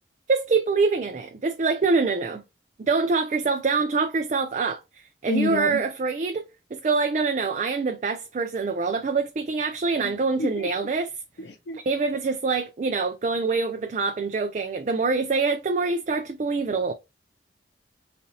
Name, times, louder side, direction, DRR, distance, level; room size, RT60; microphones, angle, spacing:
voice 1, 0.3-2.4 2.8-4.8 5.2-11.1 11.7-16.9, right 4 dB, 40° right, 0.3 m, -25 dB
voice 2, 5.3-5.8 10.0-10.1 10.4-10.7 11.4-11.8, left 2 dB, 60° left, 0.4 m, -29 dB
4.1 x 2.7 x 2.8 m
head